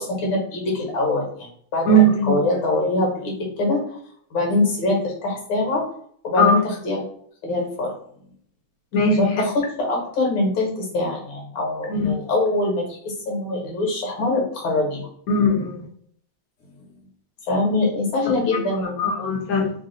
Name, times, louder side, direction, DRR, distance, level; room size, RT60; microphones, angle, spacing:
voice 1, 0.0-4.0 4.3-5.8 6.2-7.0 7.4-7.9 9.2-9.5 9.8-15.1 17.5-19.0, left 2 dB, 70° left, -1 dB, 2.1 m, -23 dB
voice 2, 1.9-2.4 6.4-6.6 8.9-9.2 11.9-12.1 15.3-15.8 19.0-19.7, right 1 dB, 55° left, 1 dB, 1.2 m, -18 dB
4.1 x 2.4 x 3.9 m, 0.64 s
omnidirectional pair, 2.3 m